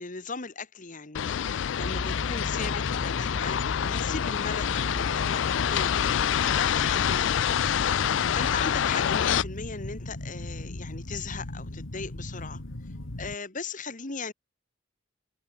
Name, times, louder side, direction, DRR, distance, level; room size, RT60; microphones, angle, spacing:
voice 1, 0.0-7.8 8.3-12.6 13.2-14.3, left 4 dB, 40° left, 1.7 m, -38 dB
sound 1, 1.1-9.4, left 9 dB, 70° left, 0.4 m, -26 dB
sound 2, 1.8-13.4, left 1 dB, 85° left, 1.9 m, -36 dB
head